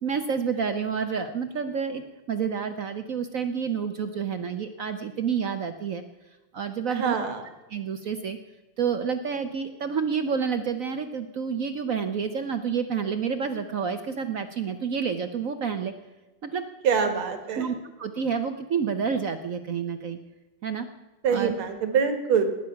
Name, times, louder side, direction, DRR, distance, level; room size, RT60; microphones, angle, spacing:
voice 1, 0.0-2.0 2.3-6.0 6.5-7.2 7.7-8.4 8.8-15.9 16.4-16.6 17.6-20.2 20.6-20.9 21.3-21.5, right 6 dB, 65° right, 8 dB, 0.8 m, -29 dB
voice 2, 6.9-7.4 16.8-17.7 21.2-22.4, right 6 dB, 80° right, 7 dB, 2.5 m, -24 dB
19.0 x 9.7 x 5.8 m, 1.1 s
omnidirectional pair, 2.3 m